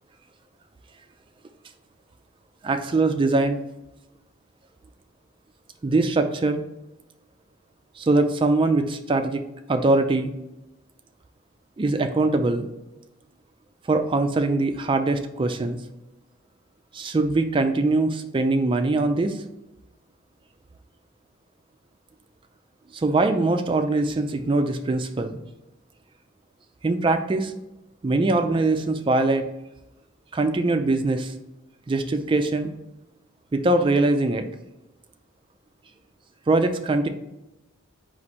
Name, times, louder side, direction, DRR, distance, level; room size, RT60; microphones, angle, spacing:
voice 1, 2.6-3.6 5.8-6.6 8.0-9.4 9.7-10.3 11.8-12.7 13.9-15.8 16.9-19.4 22.9-25.4 26.8-27.5 28.0-29.4 30.3-31.3 31.9-32.7 33.5-34.4 36.5-37.1, right 2 dB, 25° right, 7 dB, 0.3 m, -22 dB
4.3 x 2.5 x 4.1 m, 0.94 s
head